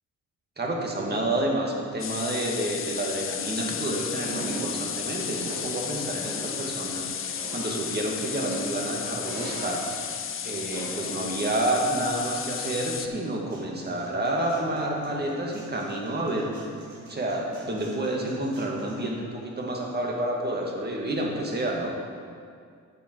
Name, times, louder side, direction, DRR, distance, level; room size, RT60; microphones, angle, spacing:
voice 1, 0.6-10.2 10.4-16.5 16.8-21.9, right 1 dB, 35° right, -1 dB, 2.1 m, -29 dB
sound 1, 2.0-13.1, left 8 dB, 45° left, 0.6 m, -33 dB
sound 2, 3.0-19.0, equal, 65° right, 3.0 m, -48 dB
sound 3, 4.2-4.9 5.2-6.0 6.2-6.7 7.2-8.9 9.2-10.1 10.7-11.1, right 3 dB, 85° right, 1.9 m, -38 dB
11.0 x 7.6 x 4.7 m, 2.2 s
cardioid pair, 90°, 30 cm